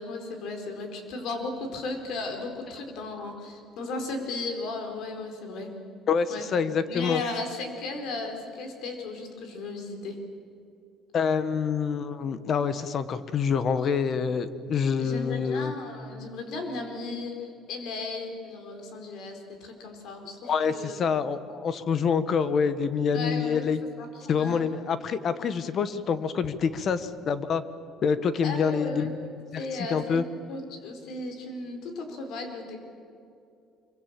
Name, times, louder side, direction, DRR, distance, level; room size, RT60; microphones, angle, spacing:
voice 1, 0.0-5.7 6.3-6.5 6.9-10.2 15.0-21.0 23.1-23.7 24.0-24.7 28.4-29.1 29.5-30.2 30.5-32.8, left 3 dB, 55° left, 4 dB, 4.4 m, -35 dB
voice 2, 6.1-7.2 11.1-15.7 20.4-23.8 24.3-27.6 28.0-29.6 29.9-30.2, left 6 dB, 35° left, 13 dB, 1.1 m, -26 dB
25.0 x 23.5 x 7.5 m, 2.5 s
cardioid pair, 165°, 0 cm